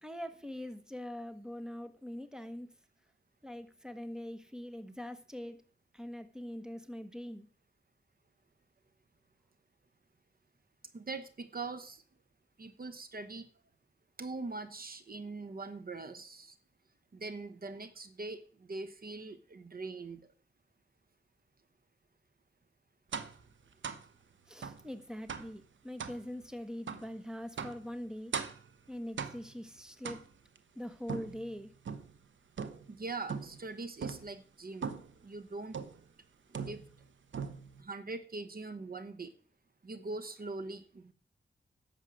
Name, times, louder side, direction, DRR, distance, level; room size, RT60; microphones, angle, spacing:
voice 1, 0.0-2.7 3.4-5.6 5.9-7.5 24.5-28.3 28.9-30.2 30.7-31.7, left 1 dB, 5° right, 10 dB, 1.3 m, -43 dB
voice 2, 10.9-12.0 12.6-13.5 14.2-16.5 17.1-20.2 32.9-34.9 35.2-35.8 36.5-36.8 37.8-39.3 39.8-41.1, right 3 dB, 50° right, 12 dB, 1.1 m, -42 dB
sound 1, 23.1-23.4 23.8-24.1 24.6-24.8 25.3-25.6 26.0-26.2 26.9-27.1 27.6-27.9 28.3-28.7 29.2-29.6 30.0-30.6 31.1-32.2 32.6-33.0 33.3-33.7 34.0-34.3 34.8-35.2 35.7-36.1 36.5-37.0 37.3-37.8, right 6 dB, 90° right, 1.0 m, -40 dB
11.0 x 7.4 x 6.3 m, 0.42 s
wide cardioid pair, 80°, 19 cm